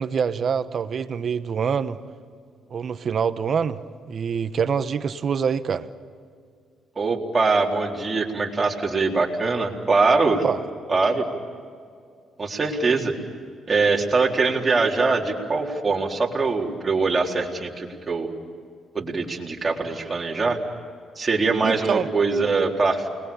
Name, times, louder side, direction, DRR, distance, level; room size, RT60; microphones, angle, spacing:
voice 1, 0.0-2.0 2.7-3.8 4.1-5.9 10.4-10.6 21.6-22.1, right 6 dB, 50° right, 12 dB, 1.1 m, -25 dB
voice 2, 7.0-10.4 10.9-11.3 12.4-13.1 13.7-18.3 18.9-20.6 21.2-23.1, right 3 dB, 25° right, -1 dB, 4.1 m, -22 dB
29.5 x 21.0 x 7.1 m, 2.2 s
cardioid pair, 90°, 0 cm